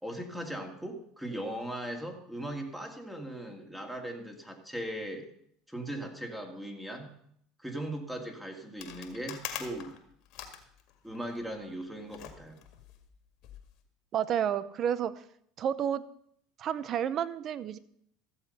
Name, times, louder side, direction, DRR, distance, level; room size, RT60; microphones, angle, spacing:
voice 1, 0.0-5.3 5.7-7.1 7.6-9.9 11.0-12.6, right 1 dB, 5° right, 3 dB, 2.2 m, -39 dB
sound 1, 8.8-11.4 12.1-13.7, left 10 dB, 60° left, 1.9 m, -44 dB
voice 2, 14.1-15.2 15.6-16.0 16.6-17.8, right 9 dB, 45° right, 17 dB, 0.6 m, -30 dB
14.5 x 7.4 x 5.5 m, 0.69 s
supercardioid pair, 100°, 0 cm